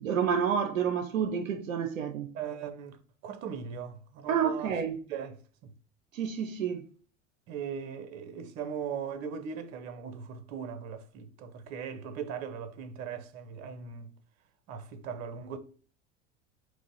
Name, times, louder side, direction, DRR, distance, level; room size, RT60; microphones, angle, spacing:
voice 1, 0.0-2.3 4.3-5.0 6.1-6.9, right 7 dB, 90° right, 0.5 m, -29 dB
voice 2, 2.3-4.8 5.1-5.4 5.6-5.7 7.5-14.2 14.7-15.6, right 7 dB, 55° right, 0.8 m, -39 dB
4.7 x 2.1 x 3.9 m
figure-of-eight pair, 75°, 38 cm